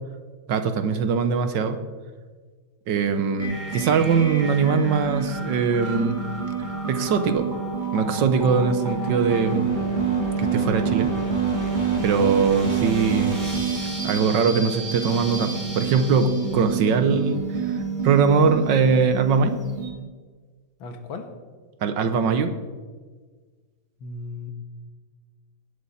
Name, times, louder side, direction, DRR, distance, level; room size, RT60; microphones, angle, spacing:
voice 1, 0.5-1.8 2.9-6.2 6.9-7.5 7.9-9.7 10.4-11.1 12.0-13.4 14.0-17.7 18.0-19.6 21.8-22.5, right 5 dB, 70° right, 9 dB, 1.6 m, -21 dB
sound 1, 3.4-19.9, right 5 dB, 25° right, 2.2 m, -27 dB
voice 2, 20.8-21.3 24.0-24.5, left 3 dB, 85° left, 6 dB, 2.2 m, -35 dB
17.5 x 11.5 x 4.2 m, 1.5 s
omnidirectional pair, 2.1 m